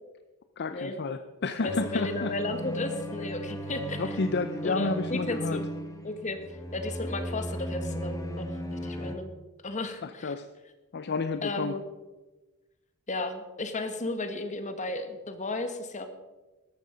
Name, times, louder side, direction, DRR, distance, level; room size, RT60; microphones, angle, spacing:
voice 1, 0.6-2.3 4.0-5.6 10.0-10.5 10.9-11.7, left 3 dB, 50° left, 9 dB, 0.6 m, -30 dB
voice 2, 1.6-4.2 4.6-5.7 6.0-6.4 6.7-8.4 8.7-9.3 9.6-10.3 11.4-11.8 13.1-16.1, left 2 dB, 35° left, 8 dB, 1.5 m, -34 dB
sound 1, 1.7-9.2, equal, 15° left, 1.3 m, -36 dB
13.0 x 12.0 x 5.1 m, 1.1 s
head